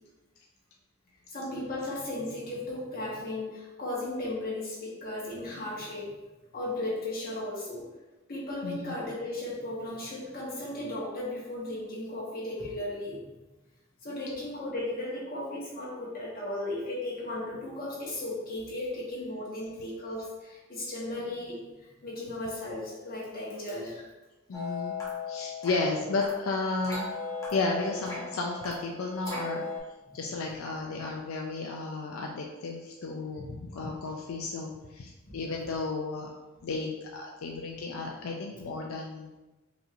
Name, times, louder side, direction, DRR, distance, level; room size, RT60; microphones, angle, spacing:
voice 1, 1.3-6.1 6.5-7.9 8.3-13.3 14.0-24.1 30.1-30.2 35.3-35.4, left 1 dB, 45° left, -5 dB, 1.4 m, -36 dB
voice 2, 8.6-8.9 24.5-25.0 25.3-27.1 27.5-29.6 30.1-36.3 36.6-39.4, left 3 dB, 90° left, 1 dB, 0.4 m, -33 dB
sound 1, 24.5-29.8, left 4 dB, 15° left, 1.0 m, -38 dB
5.0 x 3.1 x 2.6 m, 1.1 s
head